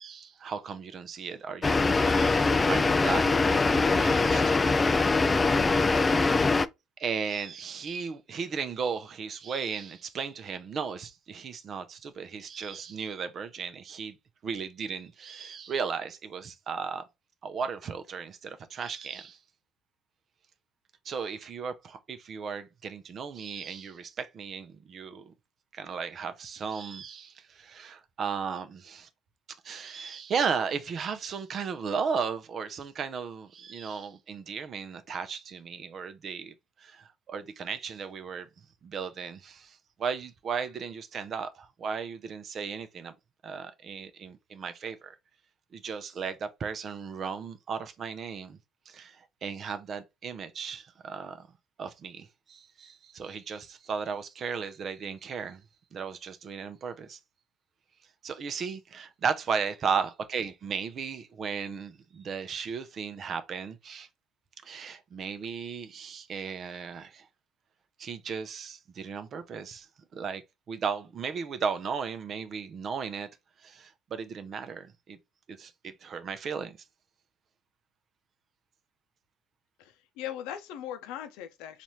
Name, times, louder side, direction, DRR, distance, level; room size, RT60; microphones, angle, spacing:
voice 1, 0.0-3.3 3.6-4.8 7.0-14.2 14.4-17.0 17.4-19.4 21.0-25.3 25.7-29.1 29.6-38.5 38.8-43.1 43.4-45.2 45.7-48.6 48.9-51.5 51.8-55.6 55.9-57.2 58.2-64.1 64.6-67.3 68.0-69.9 70.1-70.4 70.7-73.3 73.6-75.2 75.5-76.8, right 6 dB, 50° right, 0.6 m, -35 dB
sound 1, 1.6-6.7, left 3 dB, 25° left, 0.3 m, -23 dB
voice 2, 79.8-81.8, left 10 dB, 75° left, 0.6 m, -39 dB
4.1 x 2.5 x 3.0 m
hypercardioid pair, 65°, 0 cm